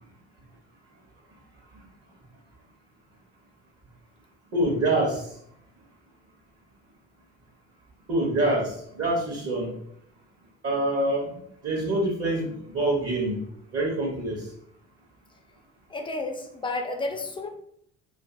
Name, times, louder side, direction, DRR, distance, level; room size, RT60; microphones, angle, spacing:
voice 1, 4.5-5.3 8.1-9.7 10.6-13.4 13.7-14.5, right 1 dB, 40° right, -1 dB, 0.8 m, -26 dB
voice 2, 15.9-17.5, left 2 dB, 15° left, 4 dB, 0.4 m, -31 dB
2.5 x 2.5 x 2.4 m, 0.69 s
hypercardioid pair, 65°, 36 cm